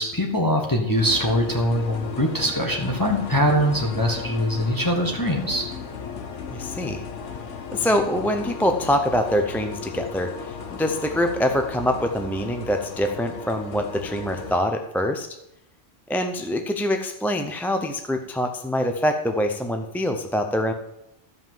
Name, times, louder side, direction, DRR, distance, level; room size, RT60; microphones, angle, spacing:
voice 1, 0.0-5.7, equal, 15° left, 0 dB, 1.4 m, -23 dB
Three Fast Synth Sounds, 1.0-14.6, left 5 dB, 85° left, 1.4 m, -35 dB
voice 2, 6.5-7.0 7.7-15.3 16.1-20.7, equal, ahead, 5 dB, 0.5 m, -24 dB
13.5 x 5.4 x 7.5 m, 0.88 s
omnidirectional pair, 1.2 m